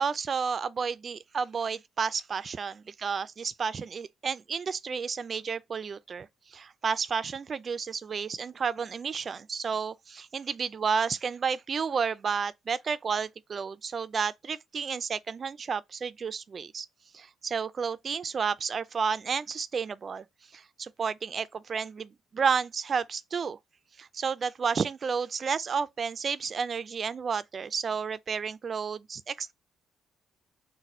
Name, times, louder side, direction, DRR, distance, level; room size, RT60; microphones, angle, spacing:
voice 1, 0.0-16.9 17.1-20.3 20.5-23.6 24.0-29.5, right 6 dB, 45° right, 0.4 m, -31 dB
4.1 x 2.2 x 4.2 m
cardioid pair, 90°, 0 cm